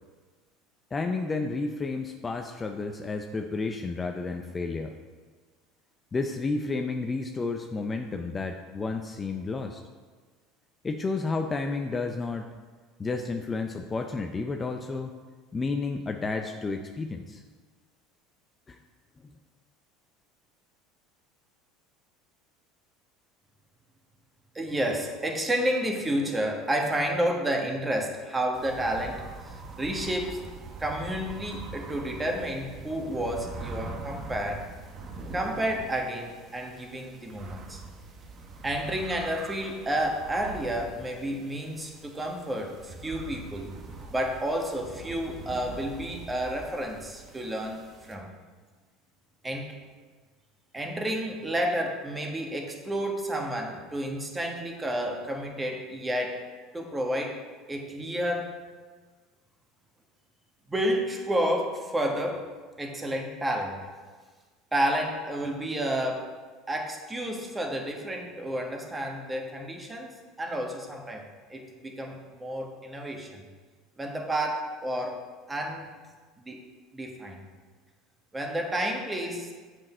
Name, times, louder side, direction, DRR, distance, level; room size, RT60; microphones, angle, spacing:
voice 1, 0.9-5.0 6.1-9.8 10.8-12.5 13.0-15.1 15.5-17.4 18.7-18.8, left 3 dB, 25° left, 4 dB, 0.6 m, -31 dB
voice 2, 24.5-30.4 30.8-34.6 35.3-37.8 38.6-43.7 44.1-47.8 48.1-48.3 49.4-49.8 50.7-56.4 56.7-57.4 57.7-58.5 60.7-62.5 62.8-63.9 64.7-66.3 66.7-73.4 74.0-75.2 75.5-75.9 76.4-76.6 76.9-77.4 78.3-79.5, right 1 dB, 15° right, 1 dB, 1.5 m, -30 dB
sound 1, 28.5-48.2, right 3 dB, 40° right, 1.1 m, -43 dB
7.4 x 6.2 x 4.5 m, 1.4 s
hypercardioid pair, 90°, 0 cm